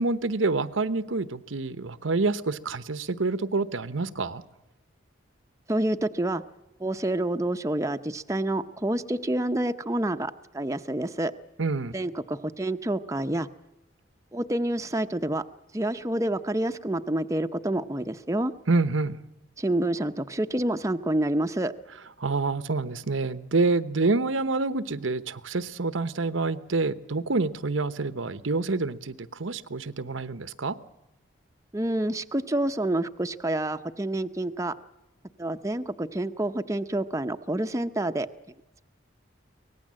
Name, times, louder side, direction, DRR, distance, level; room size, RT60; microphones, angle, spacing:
voice 1, 0.0-4.4 11.6-11.9 18.7-19.2 22.2-30.7, right 3 dB, 85° right, 14 dB, 1.0 m, -27 dB
voice 2, 5.7-6.4 6.8-11.3 11.9-13.5 14.3-15.5 15.7-18.5 19.6-21.7 31.7-34.8 35.4-38.3, right 1 dB, 15° right, 9 dB, 0.7 m, -28 dB
24.0 x 19.0 x 7.6 m, 0.99 s
head